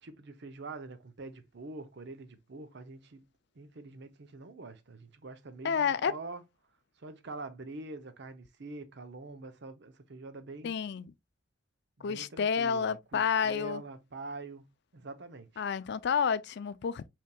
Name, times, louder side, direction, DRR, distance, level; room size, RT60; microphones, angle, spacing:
voice 1, 0.0-3.3 3.6-6.4 7.0-10.8 12.0-14.7 14.9-15.6, right 3 dB, 60° right, 0.7 m, -45 dB
voice 2, 5.6-6.1 10.6-11.1 12.0-13.8 15.6-17.1, left 6 dB, 60° left, 0.4 m, -30 dB
5.5 x 3.4 x 2.2 m
head